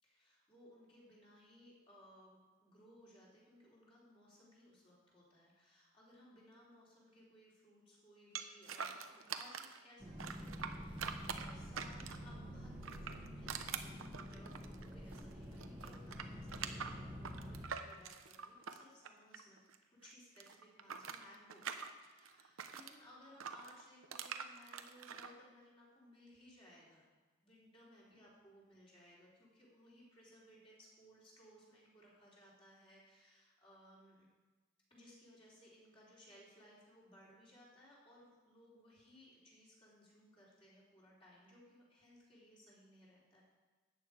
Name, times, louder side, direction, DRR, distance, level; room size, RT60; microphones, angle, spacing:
voice 1, 0.0-14.0 14.3-19.6 19.9-21.6 22.0-27.0 27.4-34.3 34.9-43.4, equal, 25° left, -6 dB, 3.3 m, -62 dB
sound 1, 8.4-9.8 10.2-12.3 12.8-15.3 15.6-19.8 20.0-22.9 23.4-25.3, right 7 dB, 85° right, 0.8 m, -45 dB
sound 2, 10.0-17.6, equal, 10° right, 1.4 m, -48 dB
13.5 x 9.1 x 4.9 m, 1.2 s
head